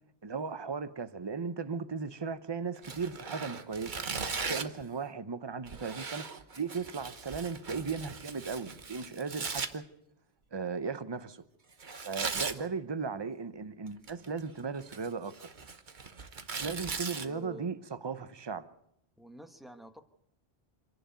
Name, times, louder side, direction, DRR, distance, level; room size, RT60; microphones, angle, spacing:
voice 1, 0.2-4.0 4.5-6.2 6.6-9.9 10.5-11.4 12.0-15.3 16.6-17.8 18.0-18.7, right 5 dB, 25° right, 0.8 m, -36 dB
Tearing, 2.8-4.8 5.7-9.7 11.8-12.6 13.9-14.4 14.8-17.3, right 5 dB, 45° right, 1.2 m, -38 dB
voice 2, 17.2-17.7 19.2-20.0, equal, ahead, 1.3 m, -49 dB
26.5 x 11.0 x 9.2 m
omnidirectional pair, 1.1 m